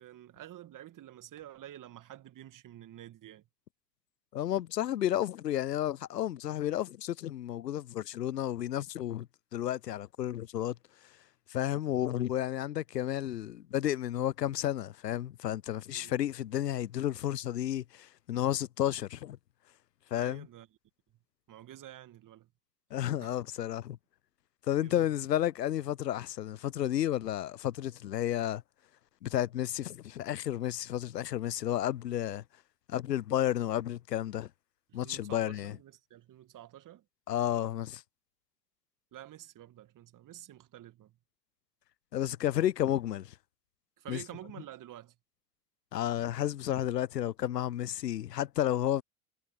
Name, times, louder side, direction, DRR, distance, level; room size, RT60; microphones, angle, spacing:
voice 1, 0.0-3.5 15.9-16.1 20.1-20.7 21.5-22.5 23.2-23.4 24.8-25.1 34.9-37.0 39.1-41.1 44.0-45.1, right 12 dB, 40° right, 2.4 m, -49 dB
voice 2, 4.3-9.3 9.5-10.8 11.5-19.4 20.1-20.5 22.9-24.0 24.7-28.6 29.2-32.4 32.9-34.5 34.9-35.8 37.3-38.0 42.1-43.3 44.1-44.2 45.9-49.0, left 12 dB, 85° left, 0.6 m, -32 dB
figure-of-eight pair, 70°, 48 cm